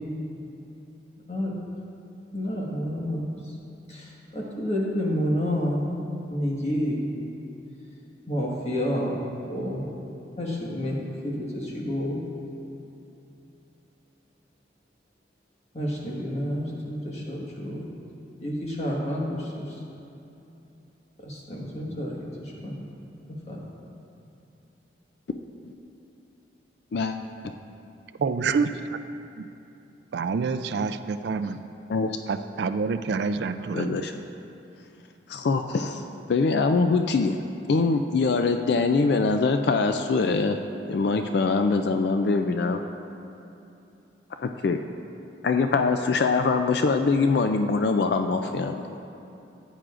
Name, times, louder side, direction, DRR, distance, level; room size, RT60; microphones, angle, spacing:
voice 1, 2.3-3.5 3.9-5.9 6.3-7.0 8.3-9.2 9.5-9.8 10.4-11.0 11.2-12.2 15.7-17.9 18.4-19.8 21.2-22.8 23.5-23.7, equal, 35° left, -3 dB, 1.5 m, -29 dB
voice 2, 28.2-28.7 29.4-29.5 30.1-31.6 32.3-34.0, right 5 dB, 70° right, 10 dB, 0.3 m, -27 dB
voice 3, 33.7-34.1 35.3-36.0 36.3-37.4 37.7-40.6 40.9-42.8 44.4-44.8 45.4-49.0, left 4 dB, 65° left, 6 dB, 0.4 m, -23 dB
14.5 x 9.2 x 2.5 m, 2.9 s
head